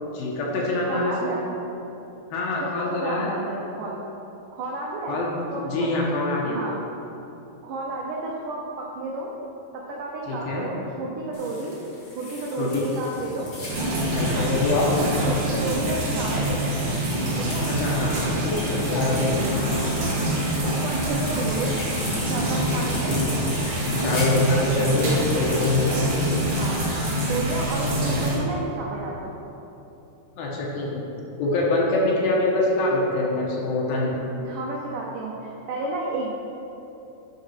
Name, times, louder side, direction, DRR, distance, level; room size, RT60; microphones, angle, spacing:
voice 1, 0.1-1.1 2.3-3.3 5.1-6.6 10.3-10.7 12.6-12.8 14.1-14.9 17.7-19.5 22.7-22.8 23.9-25.9 30.4-31.0 31.4-34.2, left 2 dB, 70° left, -3 dB, 2.6 m, -25 dB
voice 2, 0.8-1.4 2.6-4.0 4.5-5.2 5.5-5.9 6.4-6.8 7.6-9.3 9.7-11.8 12.1-13.5 14.3-14.5 15.2-16.7 17.4-17.7 20.6-21.8 22.3-23.2 26.5-26.8 27.3-29.3 34.4-36.3, right 2 dB, 85° right, -2 dB, 1.8 m, -31 dB
sound 1, 11.3-27.9, left 1 dB, 30° left, 1.7 m, -35 dB
sound 2, 13.7-28.4, right 1 dB, 55° right, 2.2 m, -26 dB
11.5 x 5.3 x 4.4 m, 2.9 s
omnidirectional pair, 4.8 m